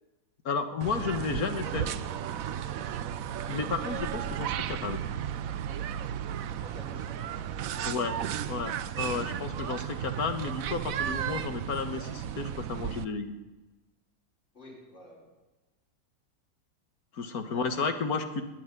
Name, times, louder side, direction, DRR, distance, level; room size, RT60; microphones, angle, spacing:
voice 1, 0.5-1.9 3.5-5.0 7.8-8.1 8.5-13.4 17.1-18.4, left 4 dB, 75° left, 8 dB, 1.9 m, -32 dB
sound 1, 0.8-13.0, right 10 dB, 70° right, 1.1 m, -34 dB
voice 2, 2.8-3.1 6.6-8.4 14.5-15.3 17.3-17.7, equal, 50° left, -6 dB, 6.0 m, -50 dB
20.0 x 7.3 x 9.7 m, 1.1 s
omnidirectional pair, 1.6 m